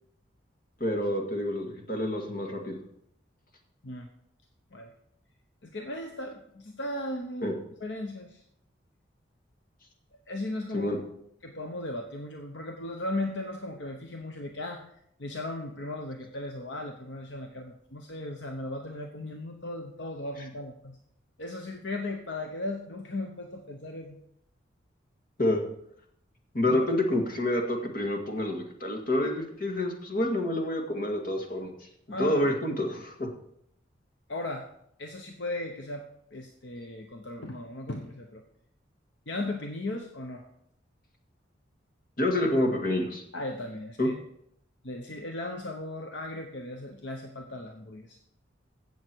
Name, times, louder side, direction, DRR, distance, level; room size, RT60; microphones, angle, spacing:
voice 1, 0.8-2.8 7.4-7.5 10.7-11.0 25.4-25.6 26.5-31.7 32.1-33.3 42.2-43.2 44.0-44.1, left 1 dB, 45° left, 2 dB, 2.0 m, -28 dB
voice 2, 5.6-8.4 10.3-11.0 11.4-14.9 15.2-21.0 21.4-24.2 26.7-26.9 32.1-32.5 34.3-34.7 35.0-38.4 39.3-40.5 43.3-44.2 44.8-48.2, left 1 dB, 65° left, 4 dB, 1.0 m, -37 dB
15.5 x 7.2 x 4.6 m, 0.72 s
head